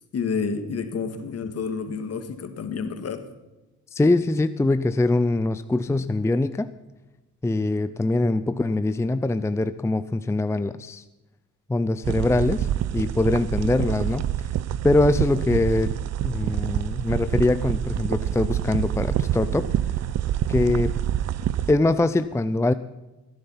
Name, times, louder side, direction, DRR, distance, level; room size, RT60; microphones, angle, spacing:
voice 1, 0.1-3.2 5.9-6.0, left 5 dB, 55° left, 8 dB, 1.9 m, -29 dB
voice 2, 3.9-6.7 7.4-11.0 11.7-12.7 12.9-14.3 14.8-15.9 16.2-19.7 20.5-20.9 21.7-22.7, left 2 dB, 10° left, 12 dB, 0.5 m, -23 dB
sound 1, 12.0-21.7, right 11 dB, 55° right, 0.6 m, -26 dB
16.5 x 10.5 x 5.7 m, 1.1 s
cardioid pair, 90°, 30 cm